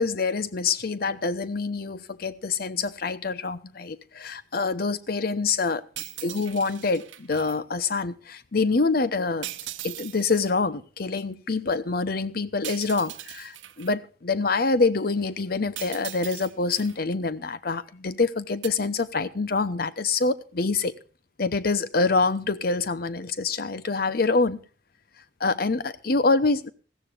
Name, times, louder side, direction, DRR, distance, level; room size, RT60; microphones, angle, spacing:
voice 1, 0.0-5.8 6.2-9.5 9.8-20.9 21.4-24.6 25.4-26.7, left 3 dB, 50° left, 0.8 m, -26 dB
sound 1, 5.9-7.6 9.4-10.5 12.6-13.9 15.7-16.9 18.6-18.7, right 14 dB, 90° right, 0.8 m, -39 dB
20.0 x 15.0 x 2.5 m
head